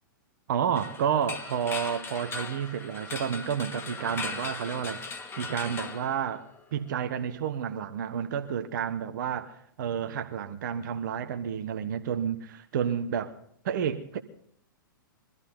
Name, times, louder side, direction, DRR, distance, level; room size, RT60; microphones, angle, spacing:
voice 1, 0.5-6.4 6.7-13.3 13.6-14.2, right 8 dB, 60° right, 1.3 m, -30 dB
sound 1, 0.8-6.7, left 4 dB, 20° left, 2.3 m, -38 dB
23.5 x 14.5 x 3.9 m
hypercardioid pair, 105°, 11 cm